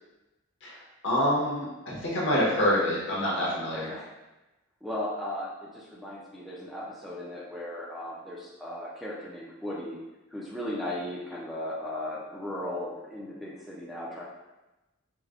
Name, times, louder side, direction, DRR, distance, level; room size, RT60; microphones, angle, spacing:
voice 1, 1.0-3.9, equal, 60° left, -5 dB, 0.8 m, -26 dB
voice 2, 3.7-4.1 4.8-10.0 10.3-14.2, left 1 dB, ahead, -7 dB, 0.3 m, -36 dB
4.7 x 2.1 x 2.4 m, 1.0 s
head